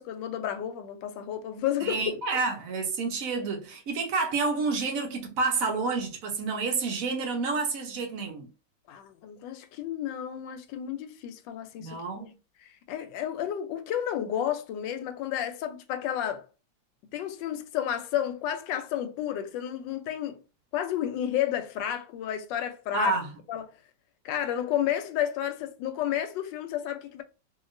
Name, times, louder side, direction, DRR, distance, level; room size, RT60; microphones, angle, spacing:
voice 1, 0.0-2.2 8.9-12.3 12.9-16.4 17.1-20.4 20.7-23.2 23.5-23.7 24.2-27.2, left 10 dB, 80° left, 1.2 m, -31 dB
voice 2, 1.8-8.5 11.8-12.3 22.9-23.3, right 4 dB, 65° right, 0.9 m, -29 dB
2.8 x 2.8 x 2.4 m
omnidirectional pair, 2.0 m